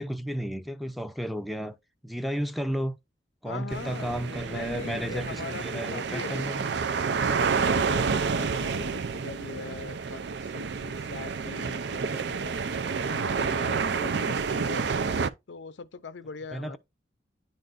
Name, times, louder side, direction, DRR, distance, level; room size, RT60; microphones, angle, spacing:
voice 1, 0.0-1.8 2.0-2.9 3.4-6.6 16.5-16.8, equal, ahead, 0.6 m, -33 dB
voice 2, 3.4-6.5 7.2-12.6 13.1-15.0 15.5-16.8, left 4 dB, 80° left, 0.6 m, -41 dB
sound 1, 3.7-15.3, right 5 dB, 65° right, 0.5 m, -29 dB
10.0 x 3.9 x 2.6 m
head